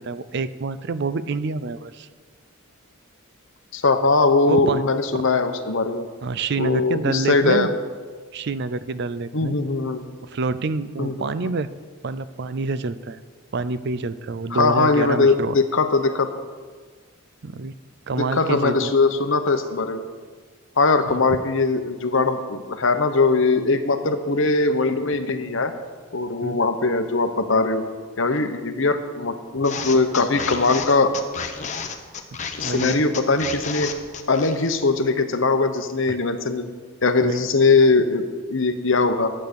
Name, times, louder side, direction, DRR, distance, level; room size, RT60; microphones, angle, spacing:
voice 1, 0.0-2.1 4.5-4.8 5.1-5.3 6.2-7.7 8.3-9.6 10.2-11.7 12.0-13.2 13.5-15.6 17.4-17.7 18.1-19.0 21.1-21.2 26.4-26.6 32.6-33.0 36.1-36.2 37.2-37.4, right 3 dB, 50° right, 14 dB, 0.5 m, -27 dB
voice 2, 3.7-6.1 6.6-7.7 9.3-10.0 11.0-11.5 14.5-16.3 18.2-20.0 20.8-25.7 26.1-27.8 28.2-31.1 32.6-33.9 34.3-36.7 37.0-39.3, left 3 dB, 60° left, 8 dB, 0.9 m, -21 dB
sound 1, 29.6-34.9, left 6 dB, 35° left, 0.9 m, -32 dB
10.5 x 8.8 x 6.6 m, 1.5 s
head